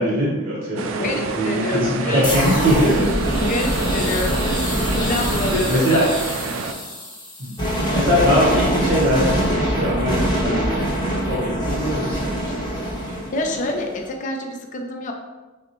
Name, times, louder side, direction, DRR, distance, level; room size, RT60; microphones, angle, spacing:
voice 1, 0.0-3.3 4.9-5.1 5.5-6.1 7.4-7.6 7.9-10.8 11.3-12.9 13.4-13.5, equal, 45° right, -5 dB, 1.0 m, -22 dB
sound 1, 0.8-6.7, right 4 dB, 70° right, 0.3 m, -29 dB
voice 2, 1.0-2.4 3.4-4.4 4.9-6.1 13.3-15.1, left 2 dB, 40° left, 3 dB, 0.4 m, -27 dB
sound 2, 2.2-14.0, equal, 20° left, 0.9 m, -23 dB
5.8 x 2.1 x 2.9 m, 1.2 s
head